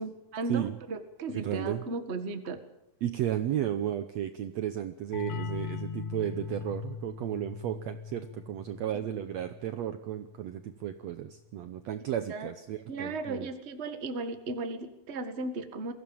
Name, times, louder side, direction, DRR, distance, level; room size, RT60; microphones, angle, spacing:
voice 1, 0.0-2.6 8.9-9.0 12.1-12.5 12.9-15.9, right 3 dB, 35° right, 8 dB, 1.0 m, -36 dB
voice 2, 1.3-1.8 3.0-13.5, right 11 dB, 90° right, 9 dB, 1.5 m, -34 dB
sound 1, 5.1-10.6, left 5 dB, 70° left, 4.4 m, -40 dB
22.5 x 16.0 x 7.1 m, 0.83 s
omnidirectional pair, 4.3 m